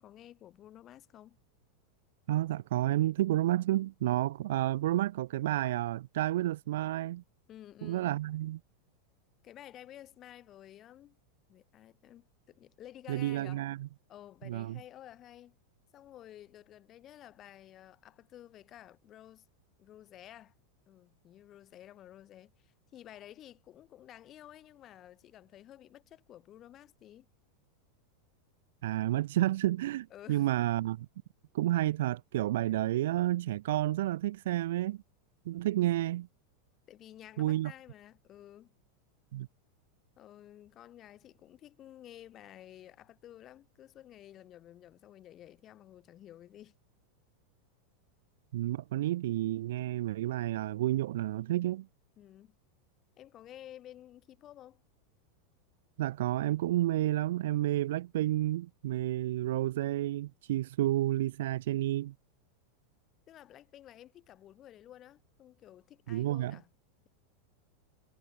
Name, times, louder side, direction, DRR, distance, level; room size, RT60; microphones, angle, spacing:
voice 1, 0.0-1.4 7.5-8.2 9.4-11.2 11.5-13.6 14.1-15.6 15.9-19.5 19.8-20.5 20.9-27.3 30.1-30.5 36.9-38.7 40.2-46.7 52.2-52.6 53.2-54.8 63.3-66.7, left 12 dB, 25° left, 2.3 m, -52 dB
voice 2, 2.3-7.2 7.8-8.6 13.1-13.9 14.4-14.8 28.8-31.1 31.5-35.0 35.5-36.3 37.4-37.7 39.3-39.5 48.5-51.9 56.0-62.1 66.1-66.6, right 14 dB, 75° right, 0.3 m, -30 dB
supercardioid pair, 165°, 0 cm